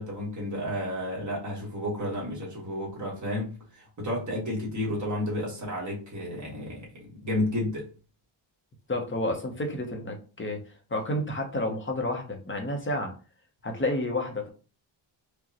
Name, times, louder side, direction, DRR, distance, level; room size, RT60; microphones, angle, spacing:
voice 1, 0.0-7.9, left 1 dB, 35° right, -4 dB, 1.4 m, -32 dB
voice 2, 8.9-10.6 10.9-13.1 13.6-14.5, left 1 dB, 25° left, 3 dB, 0.6 m, -30 dB
4.8 x 2.1 x 2.8 m, 0.36 s
wide cardioid pair, 180°, 49 cm